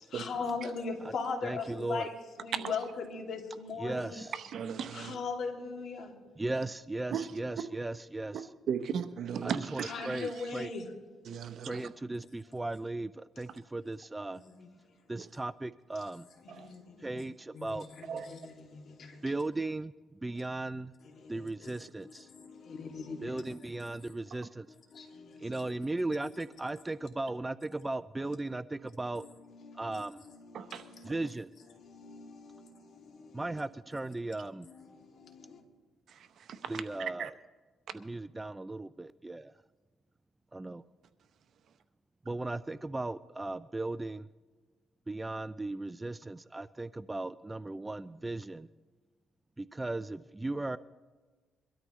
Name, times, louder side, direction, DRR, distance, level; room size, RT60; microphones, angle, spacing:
voice 1, 0.1-4.2 4.9-6.1 9.8-10.9 14.4-14.7 16.4-17.2 17.5-19.2 21.0-21.8 22.0-23.7 24.0-24.1 24.9-25.5 26.2-26.3 27.0-27.1 29.1-31.2 31.7-33.5 34.6-35.6, left 4 dB, 60° left, 2 dB, 2.6 m, -40 dB
voice 2, 1.4-2.1 3.8-4.3 6.4-8.4 9.4-10.7 11.6-14.4 15.1-16.2 17.0-17.9 19.2-19.9 20.2-20.9 21.3-22.3 23.2-24.7 25.4-29.3 29.8-30.2 31.0-31.5 33.3-34.7 36.7-37.3 37.9-39.5 40.5-40.8 42.3-44.3 45.1-48.7 49.6-50.8, right 2 dB, 15° right, 15 dB, 0.4 m, -37 dB
voice 3, 4.3-5.2 7.1-7.3 8.3-8.4 8.7-10.3 11.2-11.9 13.5-13.6 16.5-16.7 18.1-18.3 30.5-30.9 36.1-36.7 37.0-37.3, right 7 dB, 65° right, 9 dB, 1.0 m, -36 dB
23.0 x 13.0 x 3.2 m, 1.4 s
cardioid pair, 90°, 0 cm